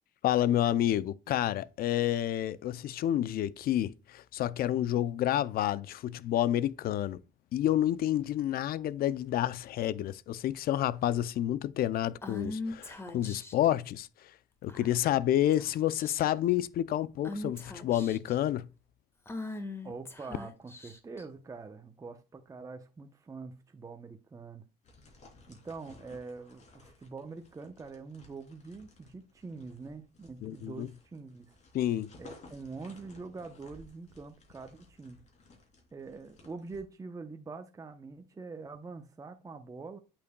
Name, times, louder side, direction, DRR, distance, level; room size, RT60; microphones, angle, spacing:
voice 1, 0.2-7.2 7.5-14.1 14.6-18.7 30.4-30.9 31.7-32.1, left 12 dB, 60° left, 0.5 m, -29 dB
Female speech woman speaking / Whispering, 12.2-13.7 14.7-15.1 15.5-15.7 16.0-16.5 17.3-18.3 19.3-21.2, left 2 dB, 15° left, 1.6 m, -40 dB
voice 2, 19.8-24.7 25.5-31.6 32.2-35.2 35.9-40.0, right 4 dB, 20° right, 0.8 m, -44 dB
sound 1, 24.8-36.8, left 3 dB, 45° left, 3.4 m, -57 dB
8.2 x 7.1 x 2.3 m
cardioid pair, 110°, 17 cm